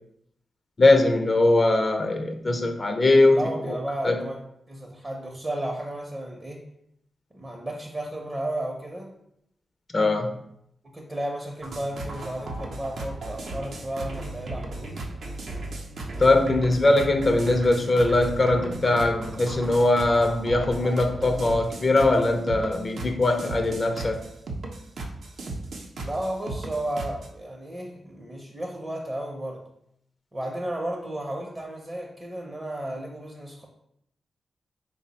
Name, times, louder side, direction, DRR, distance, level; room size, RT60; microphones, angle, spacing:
voice 1, 0.8-3.4 4.0-4.2 9.9-10.3 16.2-24.2, left 2 dB, 35° left, 5 dB, 0.4 m, -21 dB
voice 2, 3.3-4.4 4.7-6.6 7.3-9.1 10.9-15.1 26.0-29.6 30.3-33.7, right 1 dB, 25° right, 0 dB, 0.6 m, -33 dB
sound 1, 11.6-27.3, right 2 dB, 70° right, 0.6 m, -36 dB
4.0 x 2.0 x 3.9 m, 0.76 s
cardioid pair, 85°, 0 cm